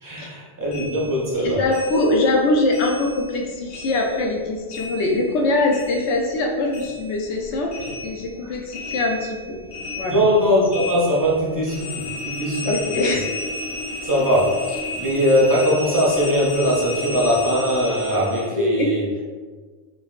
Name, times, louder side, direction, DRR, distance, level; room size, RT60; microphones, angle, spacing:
voice 1, 0.0-1.6 8.4-8.5 10.1-12.6 14.0-19.0, equal, 25° right, -5 dB, 0.4 m, -20 dB
sound 1, 0.7-3.4 3.7-6.4 6.7-18.5, left 2 dB, 50° left, 0.8 m, -33 dB
voice 2, 1.3-7.7 8.0-9.6 10.0-10.2 12.6-13.2 18.6-18.9, left 2 dB, 80° left, 0 dB, 0.9 m, -22 dB
3.4 x 2.2 x 2.4 m, 1.4 s
omnidirectional pair, 1.2 m